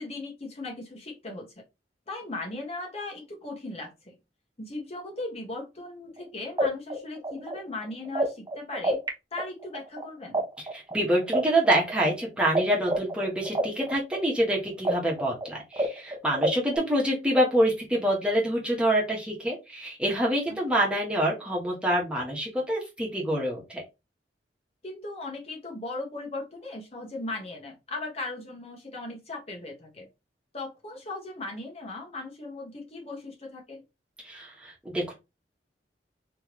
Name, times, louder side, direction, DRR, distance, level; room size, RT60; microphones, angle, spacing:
voice 1, 0.0-1.5 2.1-4.2 4.6-9.0 9.3-10.4 24.8-30.1 30.5-33.8, left 2 dB, 35° left, 0 dB, 1.4 m, -38 dB
sound 1, 6.2-6.3 6.6-9.1 9.4-12.6 12.9-16.8, right 2 dB, 20° right, 0.8 m, -28 dB
voice 2, 10.7-23.8 34.2-35.1, right 1 dB, 5° right, -3 dB, 1.4 m, -26 dB
3.4 x 3.2 x 3.1 m, 0.24 s
head